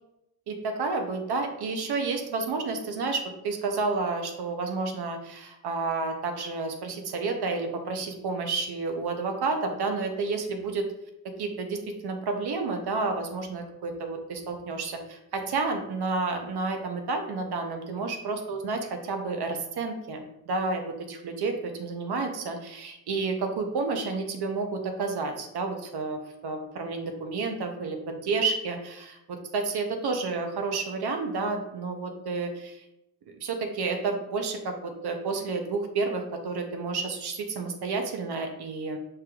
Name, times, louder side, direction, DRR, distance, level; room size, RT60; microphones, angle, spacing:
voice 1, 0.5-10.9 11.4-20.8 21.1-32.8 33.4-39.0, right 3 dB, 90° right, 4 dB, 0.6 m, -30 dB
5.9 x 3.3 x 2.3 m, 0.84 s
wide cardioid pair, 165°, 38 cm